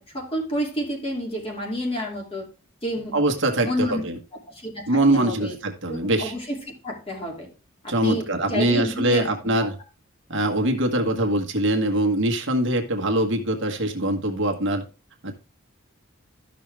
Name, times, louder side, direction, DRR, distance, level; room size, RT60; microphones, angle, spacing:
voice 1, 0.0-2.5 2.8-3.2 3.6-4.0 4.3-5.6 5.9-7.5 7.8-9.7, equal, 25° left, -1 dB, 2.7 m, -30 dB
voice 2, 3.1-4.2 4.9-6.3 7.9-9.8 10.3-14.8 15.2-15.3, right 1 dB, 55° right, 4 dB, 1.5 m, -23 dB
13.0 x 6.1 x 3.4 m, 0.32 s
head